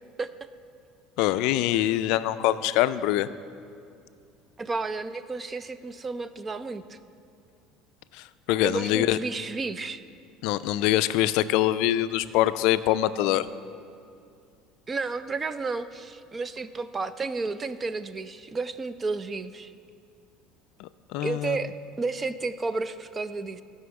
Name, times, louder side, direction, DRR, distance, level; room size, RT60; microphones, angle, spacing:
voice 1, 1.2-3.3 8.1-9.2 10.4-13.5 20.8-21.6, left 14 dB, 65° left, 14 dB, 0.3 m, -24 dB
voice 2, 4.6-7.0 8.6-10.0 14.9-19.7 21.2-23.6, right 3 dB, 20° right, 13 dB, 0.3 m, -32 dB
13.0 x 5.5 x 6.9 m, 2.4 s
cardioid pair, 155°, 0 cm